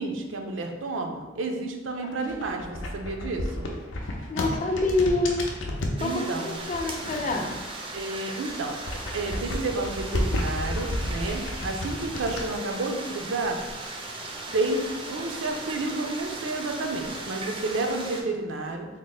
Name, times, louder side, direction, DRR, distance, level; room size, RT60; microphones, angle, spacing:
voice 1, 0.0-3.7 6.0-6.6 7.9-8.7 9.1-13.6 14.5-18.9, right 2 dB, 85° right, 3 dB, 0.5 m, -30 dB
voice 2, 2.0-2.5 4.3-5.4 6.0-7.5, left 2 dB, 40° left, 3 dB, 0.4 m, -27 dB
sound 1, 2.2-6.0 6.7-8.0 8.3-12.4, left 1 dB, 90° left, 0.6 m, -32 dB
sound 2, 6.0-18.2, right 2 dB, 25° right, 0.4 m, -37 dB
3.6 x 2.1 x 4.0 m, 1.2 s
head